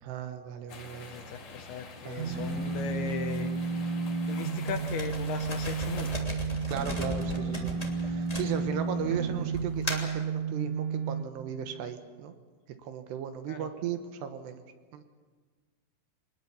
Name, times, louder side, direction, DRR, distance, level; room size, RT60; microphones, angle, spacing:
voice 1, 0.0-1.2 2.0-2.3 6.7-12.3 12.8-14.6 14.9-15.0, right 9 dB, 70° right, 8 dB, 3.0 m, -36 dB
sound 1, 0.7-6.2, left 4 dB, 50° left, 3.4 m, -46 dB
voice 2, 1.1-3.5 3.8-3.9 4.3-6.3 7.3-7.5 13.5-13.7, left 8 dB, 75° left, 7 dB, 2.5 m, -38 dB
sound 2, 2.2-11.3, right 5 dB, 90° right, 4.2 m, -32 dB
sound 3, 4.7-9.0 9.5-10.2, left 1 dB, 10° left, 2.0 m, -37 dB
24.0 x 20.5 x 7.0 m, 1.4 s
omnidirectional pair, 5.4 m